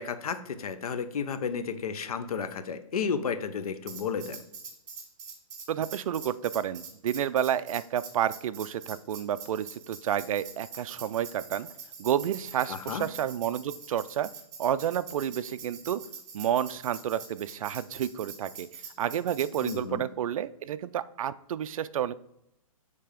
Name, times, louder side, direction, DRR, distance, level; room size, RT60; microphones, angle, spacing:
voice 1, 0.0-4.4 12.7-13.1 19.6-20.0, left 6 dB, 85° left, 11 dB, 0.7 m, -32 dB
Tambourine, 3.9-19.8, right 6 dB, 50° right, 1.6 m, -44 dB
voice 2, 5.7-11.7 12.0-14.3 14.6-16.0 16.3-22.1, right 10 dB, 70° right, 14 dB, 0.4 m, -30 dB
6.7 x 3.4 x 5.0 m, 0.80 s
hypercardioid pair, 160°, 18 cm